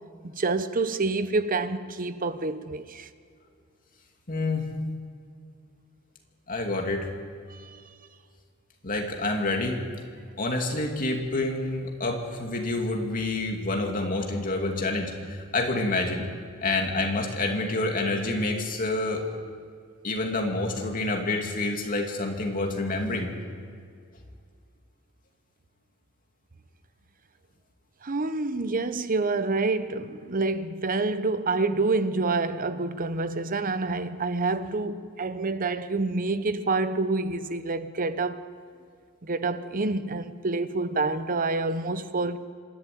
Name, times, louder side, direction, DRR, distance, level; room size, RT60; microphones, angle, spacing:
voice 1, 0.2-3.1 7.5-7.8 28.0-38.5 39.2-42.4, right 3 dB, 40° right, 0.8 m, -27 dB
voice 2, 4.3-4.7 6.5-7.1 8.8-9.8 10.4-15.1 15.5-16.2 16.6-19.2 20.0-23.3, left 2 dB, 40° left, 2.6 m, -28 dB
26.0 x 11.5 x 9.2 m
head